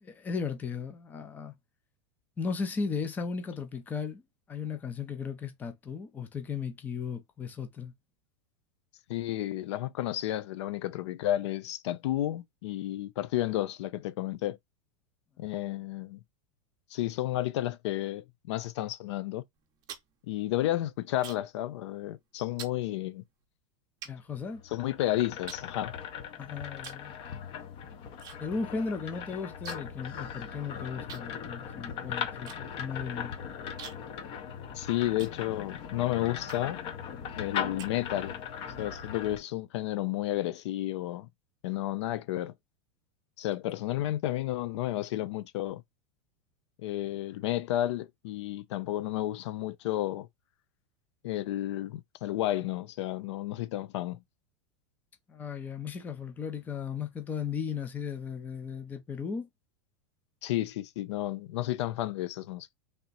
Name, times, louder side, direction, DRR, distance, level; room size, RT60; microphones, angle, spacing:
voice 1, 0.0-1.5 2.4-4.2 4.5-7.9 24.1-24.6 26.4-27.3 28.4-33.3 55.3-59.5, left 5 dB, 10° left, 0.5 m, -36 dB
voice 2, 9.1-14.6 15.4-16.2 16.9-19.4 20.3-23.2 24.7-25.9 34.8-36.8 37.4-38.4 38.8-41.3 41.6-42.5 43.4-45.8 46.8-50.3 51.2-54.2 60.4-62.8, left 14 dB, 70° left, 0.5 m, -32 dB
sound 1, 19.5-21.6 21.9-22.2 22.6-22.8 23.4-23.5 24.0-25.0 25.5-26.3 26.8-27.1 27.4-28.4 28.6-28.7 29.0-30.0 30.3-30.4 31.1-35.9 36.4-36.9 37.3-38.4, right 8 dB, 25° right, 0.7 m, -48 dB
sound 2, 24.4-39.4, left 8 dB, 35° left, 0.8 m, -39 dB
3.4 x 2.9 x 3.8 m
supercardioid pair, 170°, 15 cm